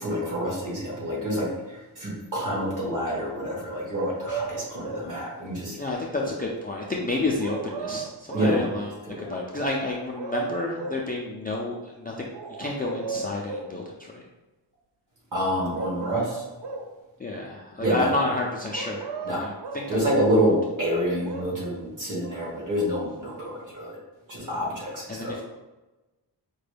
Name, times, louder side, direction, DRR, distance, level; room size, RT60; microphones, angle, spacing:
voice 1, 0.0-5.7 8.3-8.7 9.1-9.2 15.3-16.4 17.8-18.1 19.2-19.5 19.9-24.0 24.3-25.4, equal, 45° right, -5 dB, 1.4 m, -27 dB
sound 1, 3.9-5.1 7.4-8.6 9.9-11.1 12.3-13.7 15.7-16.9 18.7-19.9 21.0-21.4, right 5 dB, 70° right, 0.5 m, -34 dB
voice 2, 5.8-8.9 9.2-12.3 12.6-14.2 17.2-19.1 19.4-20.0 25.1-25.4, left 2 dB, 20° left, -4 dB, 0.3 m, -30 dB
4.9 x 2.2 x 3.3 m, 1.1 s
wide cardioid pair, 160°, 44 cm